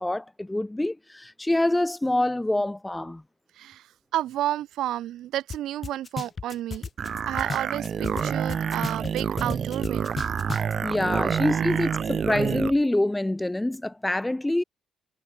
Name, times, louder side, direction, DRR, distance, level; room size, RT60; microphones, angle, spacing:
voice 1, 0.0-3.2 10.8-14.6, left 1 dB, 10° left, 0.4 m, -26 dB
voice 2, 3.5-6.9 7.3-10.1 11.2-11.6, right 13 dB, 85° right, 1.5 m, -31 dB
sound 1, 5.5-5.6 5.8-8.2 8.5-10.7, left 5 dB, 30° left, 3.0 m, -34 dB
sound 2, 7.0-12.8, right 7 dB, 40° right, 1.5 m, -28 dB
cardioid pair, 150°, 0 cm